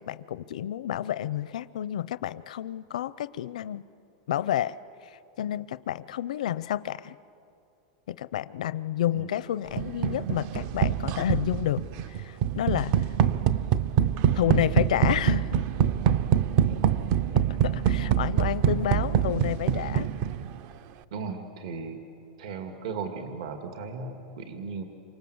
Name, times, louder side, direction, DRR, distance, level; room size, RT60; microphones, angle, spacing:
voice 1, 0.0-3.8 4.3-4.8 5.0-7.2 8.1-12.9 14.3-15.6 17.6-20.1, left 11 dB, 85° left, 16 dB, 0.6 m, -30 dB
sound 1, 9.8-20.6, right 9 dB, 35° right, 0.6 m, -25 dB
voice 2, 21.1-22.0 22.4-24.8, right 4 dB, 60° right, 5 dB, 2.1 m, -36 dB
28.0 x 25.0 x 8.0 m, 2.6 s
supercardioid pair, 180°, 4 cm